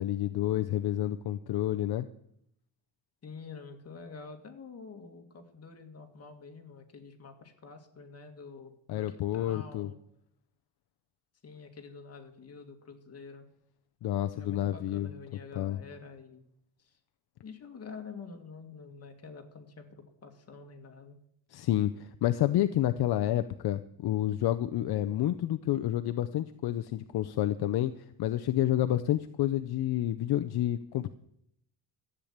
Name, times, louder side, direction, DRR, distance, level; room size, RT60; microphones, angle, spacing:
voice 1, 0.0-2.1 8.9-9.9 14.0-15.1 15.6-15.8 21.5-31.1, left 13 dB, 65° left, 9 dB, 0.7 m, -29 dB
voice 2, 3.2-10.0 11.4-13.5 14.3-16.4 16.8-17.0 17.4-21.2, left 5 dB, 35° left, 4 dB, 2.1 m, -47 dB
13.5 x 8.3 x 8.7 m, 0.72 s
cardioid pair, 165°, 41 cm